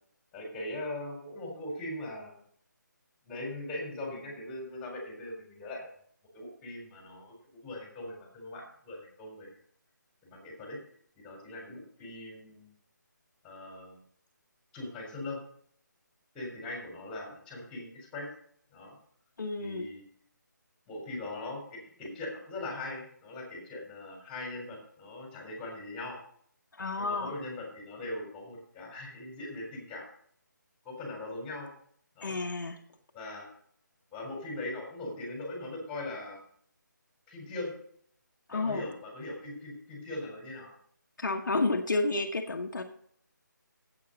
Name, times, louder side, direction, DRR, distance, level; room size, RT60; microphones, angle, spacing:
voice 1, 0.3-2.4 3.3-5.9 6.3-9.5 10.2-10.8 11.2-12.7 13.4-14.0 14.7-15.4 16.3-18.3 18.7-18.9 19.6-20.0 20.9-26.2 27.0-30.0 30.8-31.7 32.2-32.4 33.1-33.5 34.1-36.4 37.3-37.7 38.5-40.7, left 2 dB, 10° left, -1 dB, 3.7 m, -40 dB
voice 2, 19.4-19.9 26.8-27.4 32.2-32.8 38.5-38.8 41.2-42.8, left 3 dB, 70° left, 3 dB, 1.3 m, -30 dB
8.5 x 8.4 x 6.6 m, 0.62 s
figure-of-eight pair, 160°, 10 cm